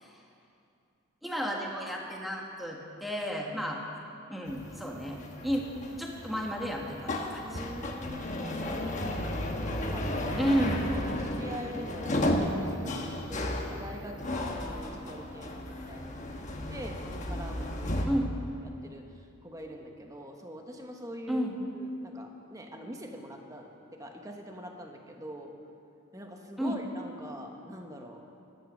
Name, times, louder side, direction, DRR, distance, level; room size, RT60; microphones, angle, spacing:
voice 1, 1.2-3.8 4.3-5.7 6.0-7.6 10.4-10.9 18.1-18.3 21.3-21.5 26.6-26.8, equal, ahead, -1 dB, 1.6 m, -32 dB
sound 1, 4.5-18.1, left 1 dB, 35° left, 1.2 m, -34 dB
voice 2, 7.4-9.3 9.7-10.5 10.9-18.1 18.6-21.5 21.7-25.5 26.1-28.3, equal, 15° right, 2 dB, 1.2 m, -44 dB
15.0 x 11.5 x 6.4 m, 2.5 s
head